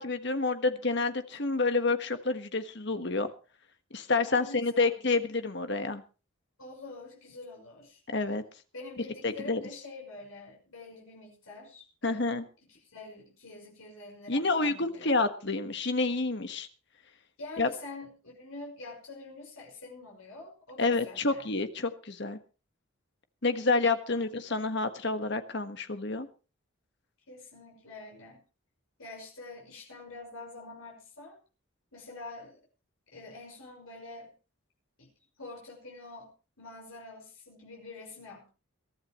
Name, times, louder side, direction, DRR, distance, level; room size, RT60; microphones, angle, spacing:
voice 1, 0.0-3.3 3.9-6.0 8.1-8.4 9.2-9.6 12.0-12.4 14.3-16.7 17.6-17.7 20.8-22.4 23.4-26.3, left 3 dB, 55° left, 8 dB, 1.5 m, -28 dB
voice 2, 4.2-5.0 6.6-8.0 8.7-12.3 12.7-15.2 17.4-21.6 24.1-24.2 27.3-28.4 29.0-31.4 31.9-32.6 33.1-34.3 35.0-35.1 35.4-38.5, left 3 dB, 85° left, -1 dB, 6.1 m, -46 dB
22.5 x 13.5 x 3.1 m, 0.34 s
head